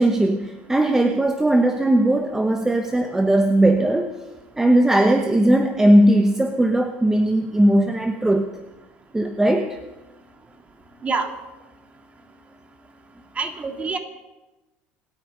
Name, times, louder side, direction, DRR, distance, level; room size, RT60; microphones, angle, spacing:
voice 1, 0.0-4.1 4.6-8.5 9.1-9.8, right 1 dB, 10° right, 6 dB, 1.1 m, -18 dB
voice 2, 13.4-14.0, right 4 dB, 25° right, 6 dB, 2.3 m, -26 dB
26.0 x 9.4 x 5.3 m, 1.1 s
supercardioid pair, 105°, 5 cm